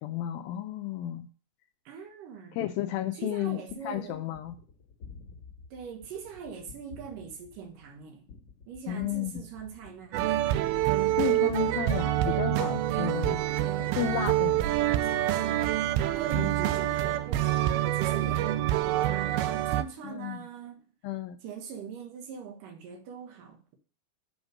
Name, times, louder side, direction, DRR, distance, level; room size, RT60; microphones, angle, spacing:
voice 1, 0.0-1.3 2.6-3.6 3.8-4.6 8.9-9.4 11.2-13.4 14.0-14.6 16.3-16.7 20.0-20.4 21.0-21.4, left 11 dB, 80° left, 2.2 m, -32 dB
voice 2, 1.9-2.6 3.2-4.2 5.7-8.2 8.7-10.4 13.5-13.9 14.8-15.7 16.2-20.9 21.4-23.8, right 7 dB, 65° right, 2.6 m, -42 dB
Gunshot gunfire, 3.7-13.4 13.8-15.2, left 4 dB, 50° left, 1.7 m, -51 dB
sound 1, 10.1-19.8, right 14 dB, 85° right, 2.3 m, -26 dB
sound 2, 11.5-16.6, left 3 dB, 30° left, 1.0 m, -53 dB
8.0 x 5.1 x 6.3 m
omnidirectional pair, 4.5 m